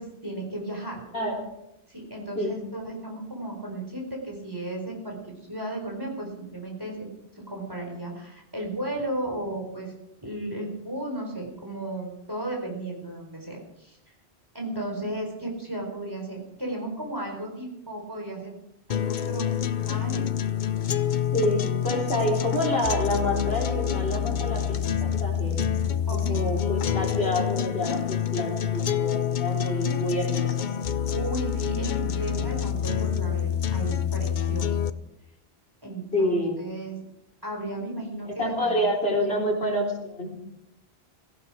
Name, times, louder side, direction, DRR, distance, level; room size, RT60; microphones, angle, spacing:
voice 1, 0.0-1.0 1.9-5.2 5.5-7.1 7.3-9.9 10.2-14.0 14.5-18.5 18.9-20.3 26.1-26.5 30.9-34.9 35.8-37.0 37.4-38.9, right 1 dB, 20° right, 0 dB, 4.5 m, -34 dB
voice 2, 1.1-1.4 2.4-2.5 14.7-14.8 21.3-25.7 26.1-30.7 36.1-36.6 38.3-40.3, left 1 dB, 75° left, -1 dB, 4.1 m, -28 dB
sound 1, 18.9-34.9, left 9 dB, 55° left, 0.7 m, -27 dB
17.0 x 15.0 x 4.9 m, 0.86 s
omnidirectional pair, 1.1 m